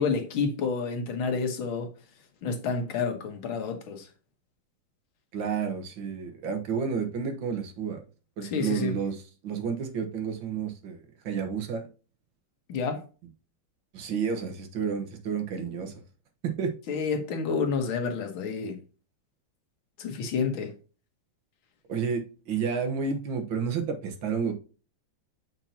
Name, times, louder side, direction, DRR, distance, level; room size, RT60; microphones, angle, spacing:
voice 1, 0.0-1.9 2.4-4.1 8.4-9.0 12.7-13.0 16.9-18.8 20.0-20.7, left 5 dB, 75° left, 1.9 m, -29 dB
voice 2, 5.3-8.0 8.4-9.2 9.4-11.9 13.9-15.9 16.4-16.7 21.9-24.5, right 6 dB, 70° right, 2.0 m, -30 dB
6.7 x 5.9 x 2.8 m
omnidirectional pair, 2.2 m